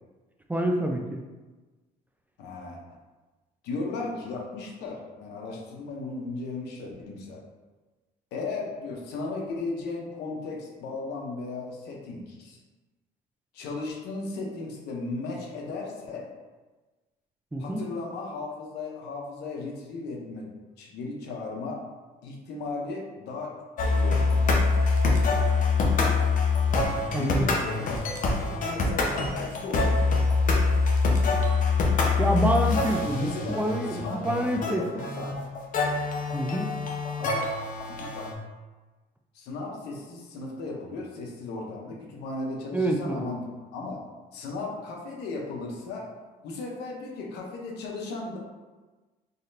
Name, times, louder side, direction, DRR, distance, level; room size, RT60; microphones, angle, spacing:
voice 1, 0.5-1.2 17.5-17.8 27.1-27.6 32.2-35.0 36.3-36.7 42.7-43.3, right 1 dB, 10° right, 2 dB, 0.4 m, -27 dB
voice 2, 2.4-2.8 3.6-7.4 8.3-12.6 13.5-16.3 17.6-20.5 20.8-21.8 22.2-23.5 23.9-24.6 27.2-30.0 33.2-33.6 33.9-35.3 37.2-37.5 38.0-38.3 39.3-43.4 43.7-44.0 44.3-46.1 46.4-48.4, left 3 dB, 85° left, -1 dB, 0.9 m, -36 dB
sound 1, 23.8-38.3, left 4 dB, 50° left, 0.7 m, -25 dB
4.0 x 3.2 x 2.7 m, 1.2 s
cardioid pair, 110°, 17 cm